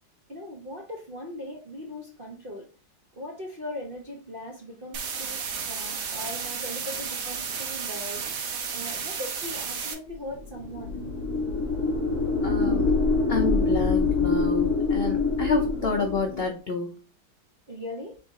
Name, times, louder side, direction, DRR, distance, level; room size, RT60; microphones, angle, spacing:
voice 1, 0.3-2.7 3.1-11.0 17.7-18.2, left 1 dB, 45° right, -1 dB, 0.7 m, -39 dB
sound 1, 4.9-9.9, right 6 dB, 70° right, 1.4 m, -33 dB
sound 2, 10.4-16.5, left 3 dB, 15° left, 1.7 m, -25 dB
voice 2, 12.4-12.9 13.3-16.9, left 4 dB, 80° left, 2 dB, 0.5 m, -28 dB
3.9 x 3.5 x 3.6 m, 0.34 s
omnidirectional pair, 2.0 m